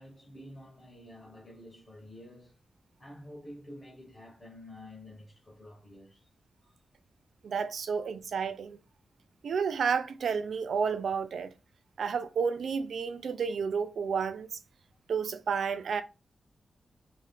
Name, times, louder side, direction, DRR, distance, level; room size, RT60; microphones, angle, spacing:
voice 1, 0.0-2.6 3.0-6.3 6.6-6.7, left 1 dB, 30° left, 0.9 m, -49 dB
voice 2, 7.4-8.8 9.4-11.5 12.0-14.6 15.1-16.0, right 6 dB, 75° right, 0.3 m, -31 dB
2.6 x 2.3 x 3.4 m
wide cardioid pair, 175°, 0 cm